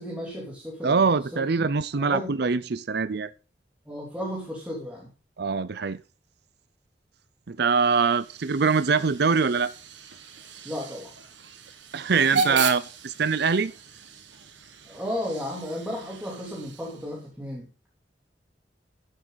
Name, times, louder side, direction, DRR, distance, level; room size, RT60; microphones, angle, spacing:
voice 1, 0.0-1.7 1.9-2.4 3.9-5.1 10.7-11.1 12.2-12.6 14.9-17.7, equal, 5° right, 3.4 m, -34 dB
voice 2, 0.8-3.3 5.4-6.0 7.5-9.7 11.9-13.7, right 5 dB, 60° right, 0.6 m, -23 dB
Hiss / Train / Alarm, 7.6-17.3, right 5 dB, 85° right, 1.8 m, -36 dB
14.5 x 7.5 x 4.1 m
head